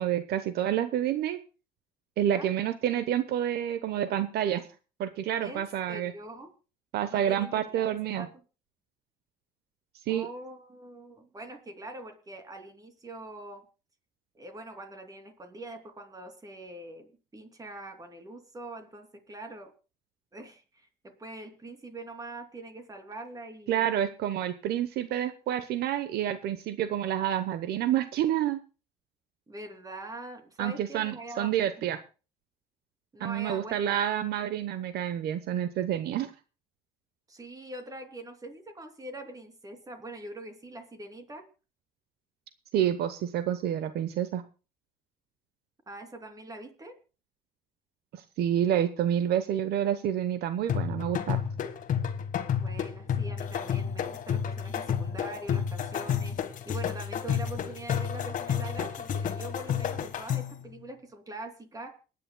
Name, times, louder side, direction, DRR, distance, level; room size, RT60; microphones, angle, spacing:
voice 1, 0.0-1.4 2.2-4.6 5.0-6.1 6.9-8.3 10.1-10.3 23.7-28.6 30.6-32.0 33.2-36.3 42.7-44.4 48.1-51.4, right 10 dB, 70° right, 12 dB, 1.0 m, -28 dB
voice 2, 5.4-6.5 7.1-8.3 10.1-13.7 14.3-19.7 20.3-23.9 29.5-31.7 33.1-34.0 37.3-41.5 45.9-47.0 52.6-61.9, right 2 dB, 20° right, 6 dB, 3.0 m, -43 dB
sound 1, 50.7-60.6, left 8 dB, 50° left, 1.5 m, -31 dB
28.0 x 9.9 x 2.3 m, 0.33 s
cardioid pair, 110°, 17 cm